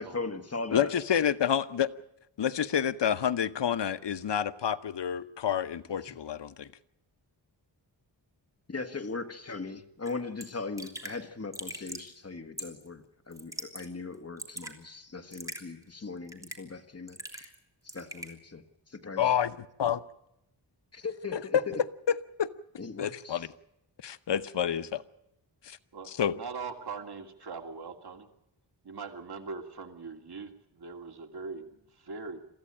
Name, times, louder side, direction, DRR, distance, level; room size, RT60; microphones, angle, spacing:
voice 1, 0.0-0.9 8.7-17.5 17.9-18.6 18.9-19.3 20.9-21.8 22.8-23.4, left 3 dB, 35° left, 1.7 m, -39 dB
voice 2, 0.7-1.9 2.4-6.7 19.2-20.0 21.3-21.6 22.4-22.5 23.0-23.5 24.0-25.0 25.6-25.8 26.2-26.3, left 9 dB, 75° left, 0.9 m, -28 dB
Raindrop / Drip, 10.1-10.2 10.4-10.5 10.8-11.2 11.5-12.1 12.6-12.9 13.3-13.9 14.1-14.7 15.3-15.6 16.3-16.7 17.1-17.6 17.9-18.3, equal, 10° right, 3.2 m, -41 dB
voice 3, 25.9-28.3 28.8-32.4, right 4 dB, 60° right, 2.6 m, -41 dB
23.0 x 15.0 x 8.9 m
wide cardioid pair, 100°, 43 cm